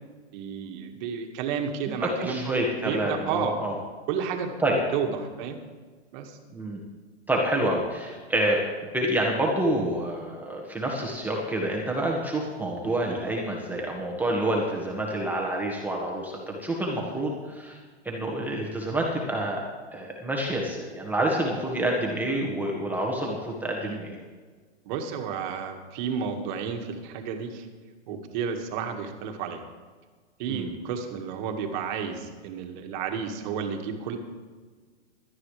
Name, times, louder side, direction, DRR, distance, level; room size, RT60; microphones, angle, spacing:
voice 1, 0.3-3.6 4.1-5.6 6.1-6.4 23.8-24.0 24.8-27.7 28.1-29.6 30.4-34.2, right 6 dB, 45° right, 4 dB, 1.8 m, -32 dB
voice 2, 2.2-3.7 4.6-4.8 6.5-6.8 7.3-8.6 8.9-17.8 18.0-19.6 19.9-24.2 30.5-30.7, right 1 dB, 5° right, -2 dB, 1.5 m, -28 dB
17.0 x 12.5 x 3.3 m, 1.5 s
hypercardioid pair, 145°, 34 cm